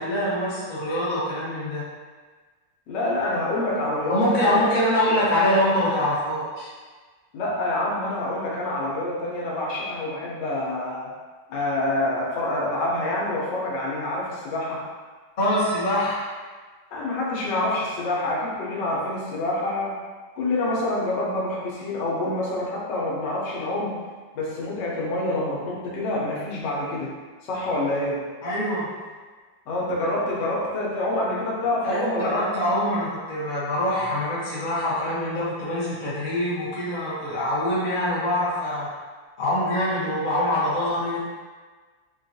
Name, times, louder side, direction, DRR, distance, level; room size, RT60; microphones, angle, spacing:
voice 1, 0.0-1.8 4.1-6.7 15.4-16.2 28.4-28.9 31.8-38.9 39.4-41.2, left 1 dB, 40° left, -8 dB, 0.7 m, -24 dB
voice 2, 2.9-4.6 7.3-11.1 11.5-14.8 16.9-20.0 20.4-23.9 24.3-27.1 27.4-28.3 29.7-32.4, left 1 dB, 80° left, -4 dB, 1.3 m, -27 dB
3.9 x 2.3 x 2.6 m, 1.4 s
omnidirectional pair, 1.9 m